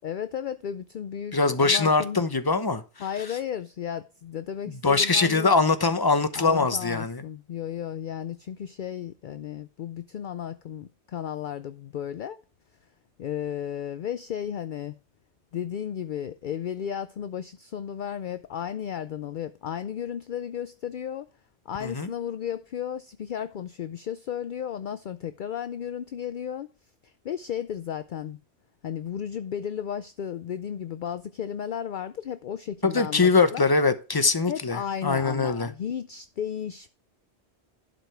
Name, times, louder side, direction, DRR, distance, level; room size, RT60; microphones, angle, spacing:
voice 1, 0.0-2.2 3.0-5.6 6.4-12.4 13.2-15.0 15.5-21.3 21.7-26.7 27.2-28.4 28.8-33.7 34.5-36.9, left 9 dB, 55° left, 0.6 m, -34 dB
voice 2, 1.3-2.8 4.7-7.2 21.8-22.1 32.8-35.7, left 4 dB, 20° left, 0.8 m, -22 dB
11.5 x 5.1 x 4.5 m
omnidirectional pair, 1.2 m